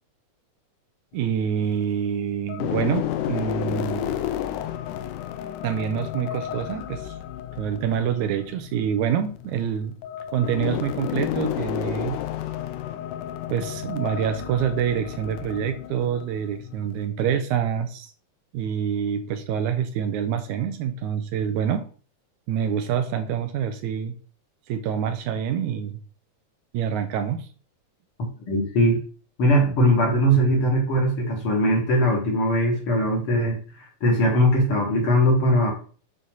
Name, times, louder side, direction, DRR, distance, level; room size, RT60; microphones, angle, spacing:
sound 1, 1.1-2.0 2.5-17.1, left 11 dB, 85° left, 2.1 m, -32 dB
voice 1, 1.1-4.2 5.6-7.2 7.6-9.9 10.3-12.2 13.5-18.1 18.5-21.9 22.5-24.2 24.7-26.0 26.7-27.5, right 8 dB, 80° right, 8 dB, 2.0 m, -26 dB
voice 2, 28.5-29.0 29.4-35.7, equal, 50° left, 0 dB, 2.1 m, -20 dB
6.4 x 4.3 x 5.3 m, 0.40 s
omnidirectional pair, 3.6 m